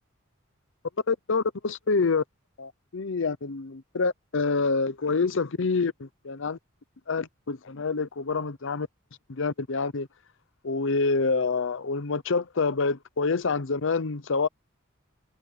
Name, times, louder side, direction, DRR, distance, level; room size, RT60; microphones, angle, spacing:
voice 1, 1.1-2.2 2.6-6.6 7.1-8.9 9.3-10.1 10.6-14.5, left 4 dB, 65° left, 0.8 m, -27 dB
head